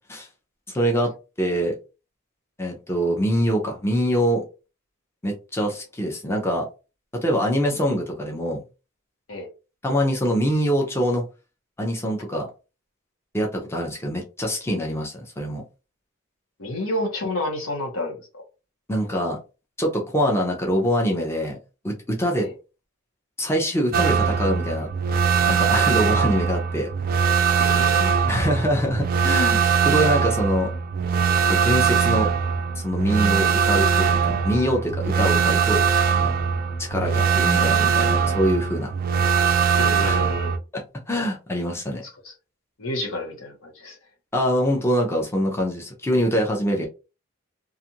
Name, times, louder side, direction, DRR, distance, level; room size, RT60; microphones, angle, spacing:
voice 1, 0.7-1.1 1.4-1.8 2.6-4.4 5.2-6.7 7.2-8.6 9.8-11.2 11.8-12.5 13.3-15.6 18.9-19.4 19.8-21.6 21.8-22.5 23.4-24.9 25.5-26.9 28.3-30.7 31.5-32.3 32.8-35.8 36.8-38.9 40.0-40.2 40.7-40.8 41.1-42.0 44.3-46.9, equal, 10° left, 0.5 m, -24 dB
voice 2, 16.6-18.4 22.4-22.5 27.6-28.2 39.8-40.5 42.2-42.3 42.8-44.0, left 1 dB, 70° left, 1.0 m, -30 dB
sound 1, 23.9-40.6, right 6 dB, 40° right, 0.3 m, -21 dB
2.5 x 2.4 x 2.8 m
head